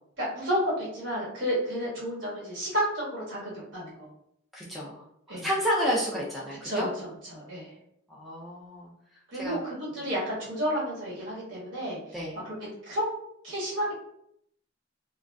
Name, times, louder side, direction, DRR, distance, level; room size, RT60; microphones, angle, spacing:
voice 1, 0.2-4.1 5.3-5.5 6.6-7.6 9.3-12.0 12.4-12.5 12.8-13.0 13.4-13.9, equal, 75° right, -6 dB, 1.3 m, -31 dB
voice 2, 4.5-5.0 5.3-6.9 8.1-8.9 9.3-9.6 12.1-12.4, equal, ahead, -6 dB, 0.4 m, -30 dB
2.4 x 2.3 x 2.2 m, 0.72 s
head